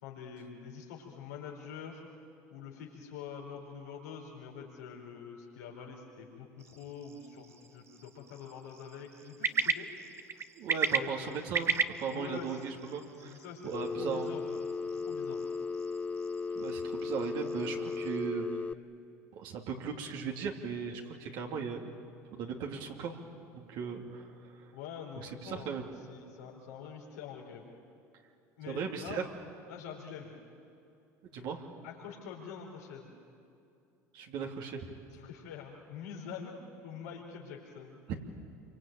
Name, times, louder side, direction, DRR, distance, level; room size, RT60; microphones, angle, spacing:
voice 1, 0.0-2.0 2.5-9.9 10.9-11.4 12.1-12.6 13.2-14.4 14.9-15.4 24.7-27.7 28.6-29.2 29.7-30.3 31.8-33.1 35.1-38.0, left 7 dB, 75° left, -2 dB, 4.3 m, -45 dB
sound 1, 6.6-18.2, right 5 dB, 30° right, 1.3 m, -38 dB
voice 2, 10.6-13.4 13.6-14.3 16.5-18.5 19.3-21.9 22.3-23.2 23.5-24.6 25.2-25.9 28.7-29.2 31.2-31.7 34.1-34.9 38.1-38.2, right 6 dB, 60° right, 1 dB, 2.9 m, -37 dB
Telephone, 13.7-18.7, left 4 dB, 15° left, 0.6 m, -36 dB
27.5 x 24.0 x 9.0 m, 2.5 s
hypercardioid pair, 75°, 9 cm